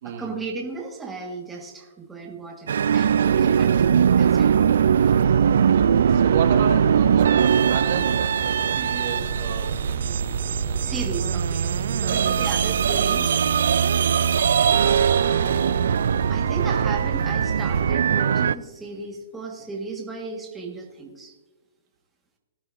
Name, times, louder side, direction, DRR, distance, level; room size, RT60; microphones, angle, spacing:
voice 1, 0.0-4.7 10.8-13.4 14.8-15.9 16.3-21.3, right 4 dB, 10° right, 0 dB, 1.5 m, -35 dB
sound 1, 2.7-18.5, right 8 dB, 70° right, 0.3 m, -21 dB
voice 2, 3.1-3.9 5.7-10.4 11.9-12.5, right 6 dB, 55° right, 4 dB, 1.6 m, -32 dB
sound 2, 5.0-17.9, right 4 dB, 35° right, 3.4 m, -33 dB
18.0 x 11.5 x 2.6 m, 1.2 s
hypercardioid pair, 145°, 0 cm